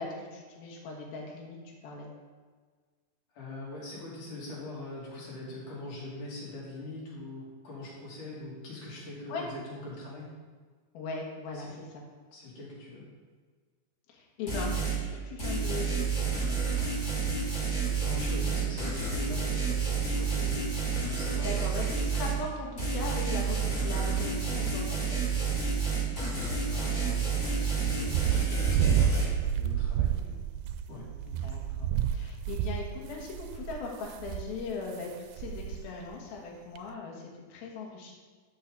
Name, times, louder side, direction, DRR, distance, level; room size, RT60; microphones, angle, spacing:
voice 1, 0.0-1.6 1.8-2.1 9.3-9.5 10.9-11.7 14.1-16.2 21.4-25.4 30.2-30.3 31.3-38.1, left 4 dB, 80° left, -1 dB, 3.2 m, -39 dB
voice 2, 3.3-10.3 11.5-11.7 12.3-13.0 18.0-21.6 26.1-30.1 30.9-31.0, left 2 dB, 60° left, -6 dB, 3.9 m, -42 dB
sound 1, 14.5-15.0 15.4-22.4 22.8-29.2, right 5 dB, 30° left, 3.0 m, -29 dB
sound 2, 27.9-35.0 35.4-35.8 36.1-36.2 36.8-36.9, right 10 dB, 80° right, 2.3 m, -30 dB
12.0 x 6.4 x 3.9 m, 1.5 s
omnidirectional pair, 4.3 m